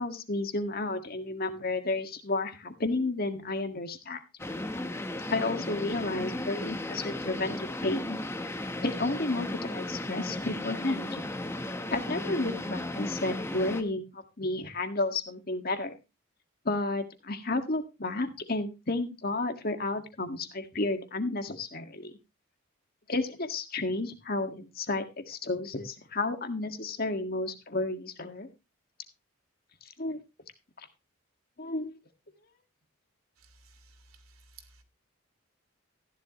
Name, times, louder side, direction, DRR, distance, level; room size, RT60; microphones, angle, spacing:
voice 1, 0.0-4.2 5.3-8.2 8.8-11.3 11.9-15.9 16.6-22.1 23.1-28.5 30.0-30.2 31.6-31.9, left 2 dB, 45° left, 1.7 m, -32 dB
sound 1, 4.4-13.8, left 1 dB, 10° left, 1.0 m, -35 dB
voice 2, 33.4-34.8, right 4 dB, 85° right, 2.7 m, -56 dB
15.0 x 11.0 x 3.0 m
head